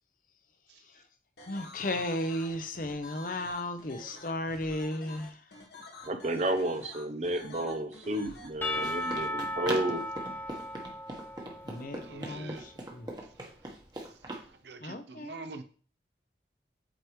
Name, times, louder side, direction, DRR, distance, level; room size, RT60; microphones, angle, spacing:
sound 1, 1.4-9.3, left 2 dB, 75° left, 1.3 m, -49 dB
voice 1, 1.5-5.5 7.6-7.7 11.6-13.1 14.8-15.4, left 1 dB, 50° left, 0.6 m, -35 dB
voice 2, 6.1-10.0, right 1 dB, 40° right, 0.5 m, -32 dB
Run, 8.3-14.5, right 1 dB, 25° right, 1.1 m, -41 dB
Percussion / Church bell, 8.6-12.5, left 1 dB, 10° left, 0.6 m, -36 dB
voice 3, 12.1-12.7 14.6-15.6, right 3 dB, 80° right, 0.8 m, -44 dB
7.9 x 4.7 x 3.1 m
head